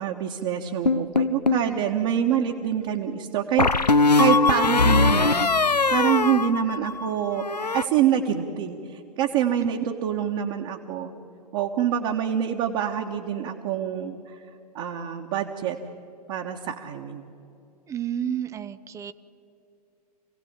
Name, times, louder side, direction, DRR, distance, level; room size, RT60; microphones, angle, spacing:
voice 1, 0.0-5.5 5.9-7.4 7.7-11.1 11.5-14.4 14.7-15.8 16.3-17.2, right 9 dB, 40° right, 1 dB, 1.5 m, -26 dB
sound 1, 0.9-1.7 3.6-7.1 7.4-7.9, left 4 dB, 90° left, 0.6 m, -21 dB
voice 2, 17.9-19.1, right 9 dB, 15° right, 13 dB, 0.6 m, -31 dB
27.0 x 17.0 x 8.9 m, 2.8 s
figure-of-eight pair, 105°, 21 cm